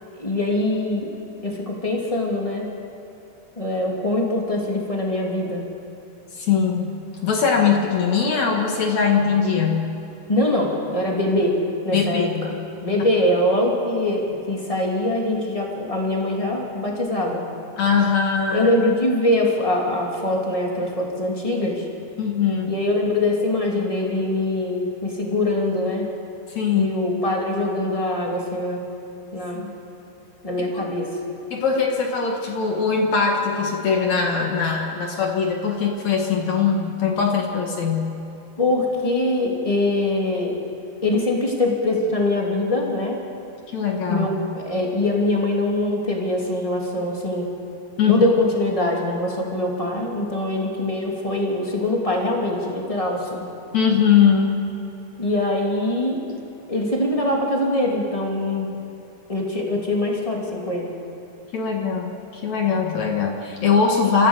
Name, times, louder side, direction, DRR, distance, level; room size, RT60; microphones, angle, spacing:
voice 1, 0.2-1.1 1.4-2.7 3.6-5.6 10.3-11.6 11.8-12.5 12.8-17.4 18.5-21.9 22.7-26.1 26.7-28.8 29.3-29.6 30.4-31.2 38.6-40.6 41.0-43.2 44.1-47.5 48.1-53.4 55.2-56.2 56.7-58.7 59.3-60.9, left 1 dB, 10° left, -1 dB, 2.2 m, -23 dB
voice 2, 6.4-7.0 7.2-9.9 11.9-12.5 17.8-18.7 22.2-22.7 26.6-26.9 29.5-29.8 30.7-30.8 31.5-38.0 43.7-44.3 48.0-48.2 53.7-54.6 61.5-64.3, left 6 dB, 50° left, 1 dB, 2.6 m, -21 dB
28.5 x 15.0 x 8.3 m, 2.7 s
omnidirectional pair, 4.8 m